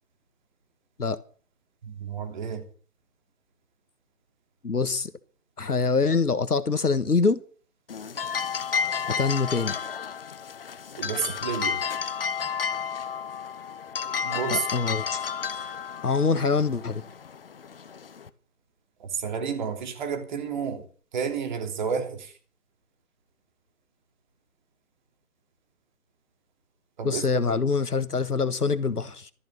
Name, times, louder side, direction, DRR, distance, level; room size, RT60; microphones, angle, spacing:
voice 1, 1.8-2.6 11.0-11.8 14.2-14.7 19.0-20.9 21.1-22.3 27.0-27.2, right 6 dB, 30° right, 2.9 m, -30 dB
voice 2, 4.6-5.1 5.6-7.4 9.2-9.8 14.5-15.7 16.0-17.0 27.0-29.3, left 4 dB, 85° left, 1.6 m, -25 dB
sound 1, 7.9-18.3, left 6 dB, 40° left, 1.1 m, -32 dB
14.0 x 10.0 x 8.2 m
figure-of-eight pair, 150°, 45 cm